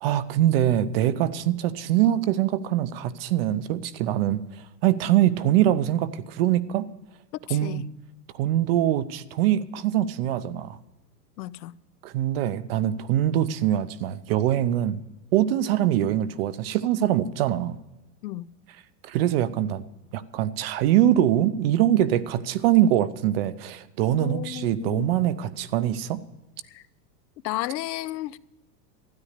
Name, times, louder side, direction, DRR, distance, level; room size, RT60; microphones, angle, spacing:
voice 1, 0.0-4.4 4.8-6.9 7.5-7.8 8.4-10.8 12.0-15.0 15.3-17.8 19.0-19.8 20.1-26.2, right 12 dB, 40° right, 0.5 m, -23 dB
voice 2, 7.5-7.8 11.4-11.7 18.2-18.5 24.1-25.1 26.7-26.8 27.4-28.4, left 15 dB, 85° left, 0.7 m, -33 dB
13.0 x 9.8 x 6.6 m
supercardioid pair, 155°, 49 cm